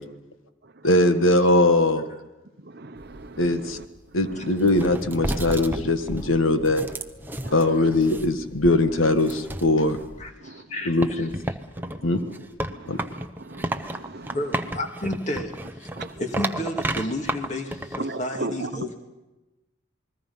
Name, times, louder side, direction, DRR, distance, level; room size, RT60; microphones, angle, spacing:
voice 1, 0.8-2.0 3.4-3.8 4.1-6.9 7.5-10.0 10.8-11.3 12.0-12.2 12.9-13.0, left 2 dB, 75° left, 9 dB, 1.5 m, -21 dB
voice 2, 2.6-3.9 4.2-4.6 7.4-7.7 9.9-10.0 10.4-10.7 11.8-14.4 15.9-16.2 18.0-18.9, right 2 dB, 50° right, 10 dB, 0.9 m, -38 dB
sound 1, 3.0-10.3 11.0-18.0, right 1 dB, 10° right, 0.8 m, -33 dB
voice 3, 10.2-11.3 14.3-15.5 15.8-15.9 16.2-19.0, left 1 dB, 35° left, 4 dB, 2.3 m, -31 dB
28.5 x 21.0 x 5.6 m, 1.0 s
head